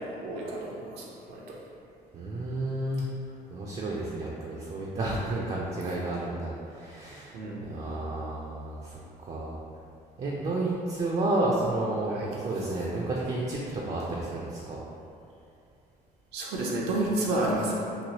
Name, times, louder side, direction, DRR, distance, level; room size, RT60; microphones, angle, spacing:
voice 1, 0.0-1.6 7.3-7.8 12.1-12.3 16.3-17.8, right 1 dB, 80° right, -3 dB, 0.6 m, -31 dB
voice 2, 2.1-3.0 3.5-7.3 7.7-9.5 10.2-14.8, right 2 dB, 40° right, -4 dB, 0.4 m, -31 dB
3.0 x 2.3 x 2.8 m, 2.5 s
cardioid pair, 110°, 17 cm